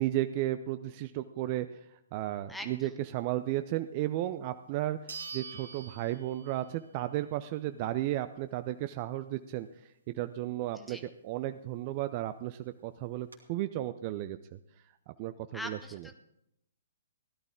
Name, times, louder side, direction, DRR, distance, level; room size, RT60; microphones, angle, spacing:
voice 1, 0.0-1.8 2.1-9.7 10.1-11.0 11.2-14.4 15.2-16.0, right 14 dB, 35° right, 11 dB, 0.5 m, -34 dB
voice 2, 2.5-2.9 10.7-11.0 15.5-16.1, left 1 dB, 5° left, 5 dB, 1.3 m, -42 dB
sound 1, 4.2-4.3 5.1-6.8 7.2-7.3 11.9-12.0 12.2-12.3 12.9-13.4, right 5 dB, 80° right, 2.6 m, -45 dB
16.5 x 12.0 x 3.7 m, 0.79 s
figure-of-eight pair, 120°, 0 cm